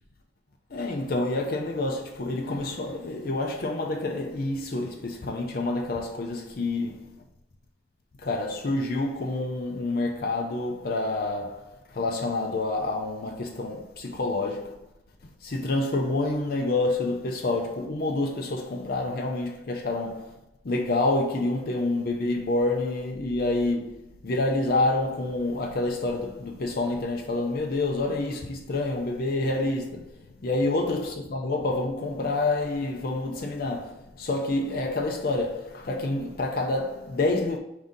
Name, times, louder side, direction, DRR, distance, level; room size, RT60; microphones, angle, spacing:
voice 1, 0.7-7.2 8.2-14.8 15.4-20.3 20.6-37.6, left 2 dB, 50° left, 0.5 m, -28 dB
4.9 x 2.7 x 3.7 m
head